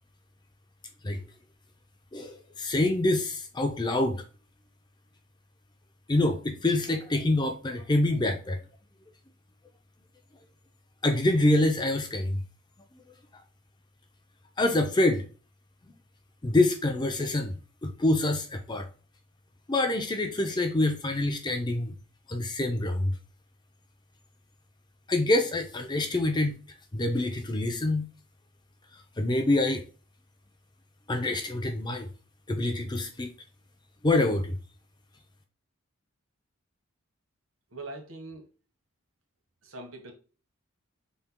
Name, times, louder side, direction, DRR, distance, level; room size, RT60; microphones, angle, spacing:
voice 1, 2.1-4.2 6.1-8.6 11.0-12.4 14.6-15.2 16.4-17.5 17.8-18.9 19.7-21.9 22.3-23.2 25.1-26.6 26.9-28.0 29.2-29.8 31.1-32.1 32.5-33.3 34.0-34.6, left 2 dB, 20° left, 0.6 m, -26 dB
voice 2, 37.7-38.5 39.6-40.1, right 2 dB, 85° right, 1.3 m, -42 dB
5.6 x 4.3 x 2.2 m
head